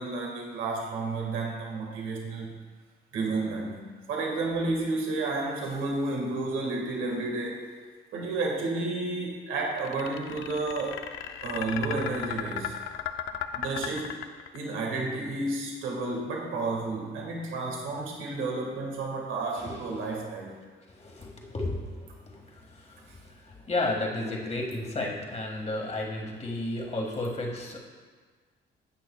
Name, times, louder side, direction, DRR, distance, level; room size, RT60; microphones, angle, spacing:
voice 1, 0.0-2.6 3.1-7.6 8.1-11.0 11.4-12.8 13.5-14.1 14.5-20.5, right 3 dB, 85° right, -1 dB, 1.7 m, -31 dB
sound 1, 9.8-14.8, left 11 dB, 85° left, 0.5 m, -35 dB
voice 2, 19.6-20.1 20.9-27.8, left 2 dB, 35° left, 0 dB, 1.7 m, -33 dB
16.5 x 6.1 x 2.3 m, 1.5 s
cardioid pair, 90°, 20 cm